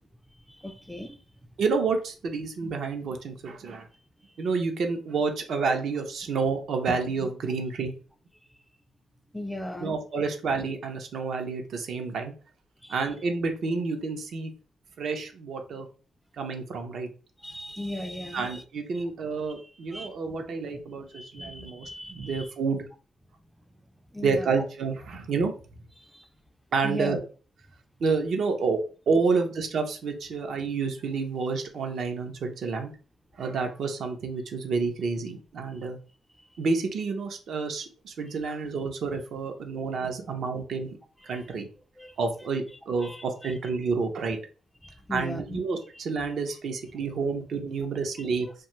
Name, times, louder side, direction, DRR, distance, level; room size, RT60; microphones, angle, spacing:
voice 1, 0.6-1.2 9.3-10.0 12.8-13.1 17.4-18.6 18.9-19.0 19.6-20.4 21.1-22.5 24.1-24.5 26.1-26.2 26.8-27.3 41.3-41.5 42.0-42.2 43.0-43.5 44.8-45.6 48.4-48.5, equal, ahead, 0.3 m, -37 dB
voice 2, 1.6-3.9 4.4-7.9 9.8-12.3 12.9-14.5 15.0-15.9 16.4-17.1 18.3-22.8 24.2-25.5 26.7-27.2 28.0-28.8 29.1-32.9 33.4-36.0 36.6-40.9 41.3-41.7 42.2-44.4 45.1-48.5, right 4 dB, 60° right, 0.6 m, -29 dB
2.6 x 2.2 x 3.0 m
cardioid pair, 115°, 0 cm